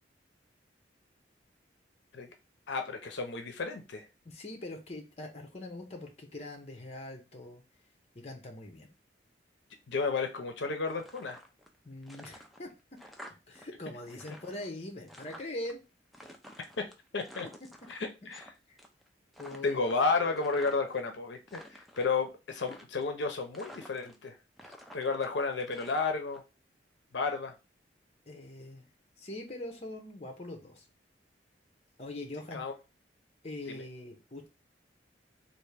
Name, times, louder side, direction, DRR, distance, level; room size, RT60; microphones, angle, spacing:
voice 1, 2.7-4.1 9.9-11.4 17.1-17.5 17.9-18.0 18.3-18.4 19.6-24.4 24.9-26.4 27.1-27.5 32.5-32.7 33.7-33.8, left 4 dB, 75° left, 5 dB, 0.6 m, -32 dB
voice 2, 4.2-7.6 8.1-8.9 11.8-13.0 13.5-15.8 18.7-18.8 19.4-19.8 28.3-28.9 29.2-30.8 32.0-32.6 33.4-34.5, left 1 dB, 35° left, 3 dB, 0.7 m, -42 dB
sound 1, 10.9-11.8 12.0-13.7 13.9-15.7 16.1-18.5 18.8-19.1 19.3-21.0 21.4-22.1 22.6-23.2 23.5-24.3 24.6-26.4, equal, ahead, 0.4 m, -51 dB
3.4 x 2.5 x 3.3 m, 0.28 s
head